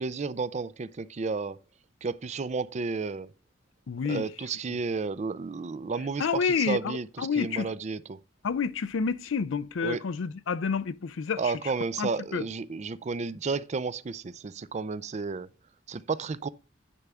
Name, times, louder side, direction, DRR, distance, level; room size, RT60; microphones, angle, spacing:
voice 1, 0.0-1.6 2.0-3.3 4.0-8.2 9.8-10.0 11.4-15.5 15.9-16.5, right 4 dB, 35° right, 0.4 m, -32 dB
voice 2, 3.9-4.3 6.2-7.7 8.4-11.5 12.0-12.4, left 5 dB, 80° left, 0.5 m, -29 dB
9.9 x 3.6 x 6.8 m
head